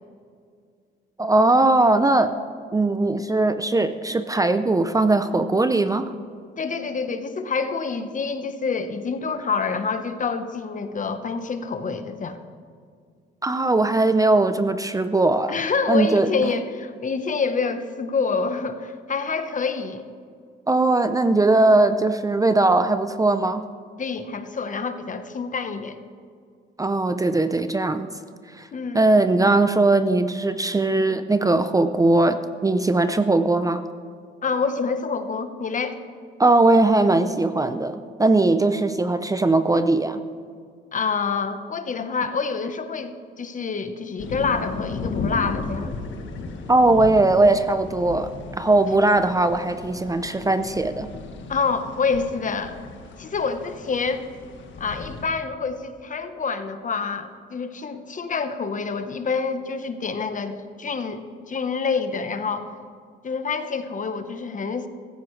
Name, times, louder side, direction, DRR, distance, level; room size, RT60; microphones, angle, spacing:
voice 1, 1.2-2.3 2.7-6.1 13.4-15.5 15.9-16.3 20.7-23.6 26.8-28.1 28.5-28.7 28.9-33.8 36.4-40.2 46.7-51.1, right 2 dB, 15° right, 10 dB, 0.5 m, -19 dB
voice 2, 6.6-12.4 15.5-20.0 24.0-26.0 28.7-29.3 34.4-36.0 40.9-46.0 51.5-52.8 53.2-54.3 54.8-62.7 63.2-64.9, left 5 dB, 40° left, 9 dB, 1.1 m, -27 dB
sound 1, 44.2-55.3, left 3 dB, 70° left, 1.5 m, -35 dB
15.5 x 14.5 x 3.2 m, 2.2 s
cardioid pair, 90°, 20 cm